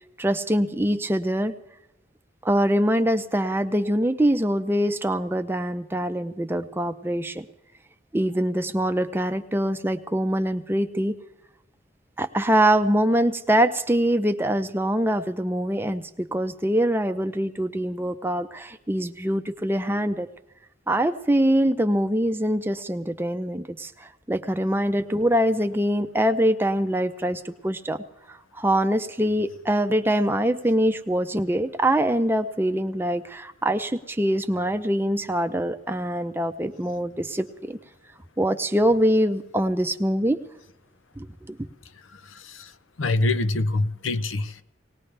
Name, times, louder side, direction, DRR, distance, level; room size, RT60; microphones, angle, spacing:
voice 1, 0.2-1.5 2.4-7.5 8.1-11.2 12.2-20.3 20.9-28.0 28.3-37.8 38.4-40.4 41.2-41.6, right 1 dB, 10° right, 0.6 m, -24 dB
voice 2, 42.1-42.7 43.0-44.6, left 2 dB, 85° left, 0.7 m, -25 dB
19.0 x 19.0 x 3.3 m
head